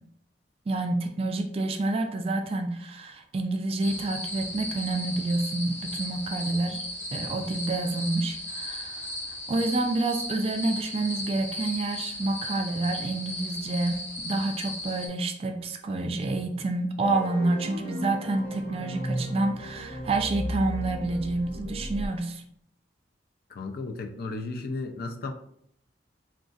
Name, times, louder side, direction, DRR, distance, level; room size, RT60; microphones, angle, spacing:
voice 1, 0.7-6.8 7.1-9.1 9.5-22.4, right 2 dB, 30° right, 5 dB, 0.3 m, -28 dB
sound 1, 3.8-15.1, left 1 dB, 10° left, 0.6 m, -36 dB
sound 2, 17.0-22.1, equal, 30° left, 0.9 m, -35 dB
voice 2, 23.5-25.3, left 3 dB, 55° left, 5 dB, 0.4 m, -34 dB
2.4 x 2.3 x 3.8 m, 0.70 s
head